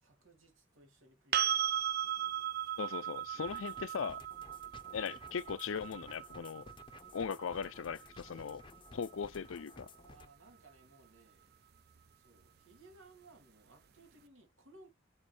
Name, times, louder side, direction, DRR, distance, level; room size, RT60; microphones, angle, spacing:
voice 1, 0.0-2.7 3.2-3.7 9.3-11.6 12.2-14.9, right 2 dB, 90° right, 2.9 m, -62 dB
sound 1, 1.3-9.1 12.0-12.1, right 11 dB, 50° right, 0.5 m, -37 dB
voice 2, 2.8-4.2 4.9-6.7 7.1-8.7 8.9-9.9, left 6 dB, 85° left, 0.5 m, -39 dB
sound 2, 3.4-10.3, left 3 dB, 25° left, 0.6 m, -56 dB
7.4 x 4.3 x 3.3 m
head